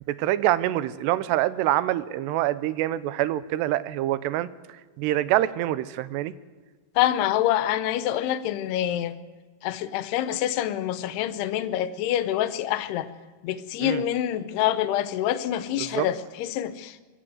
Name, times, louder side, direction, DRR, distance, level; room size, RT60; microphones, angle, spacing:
voice 1, 0.1-4.5 5.0-6.3 13.8-14.0 15.8-16.1, right 14 dB, 90° right, 15 dB, 2.9 m, -25 dB
voice 2, 7.0-9.1 9.6-13.1 13.4-17.0, left 12 dB, 80° left, 13 dB, 2.9 m, -26 dB
24.0 x 16.5 x 7.8 m, 1.4 s
omnidirectional pair, 4.7 m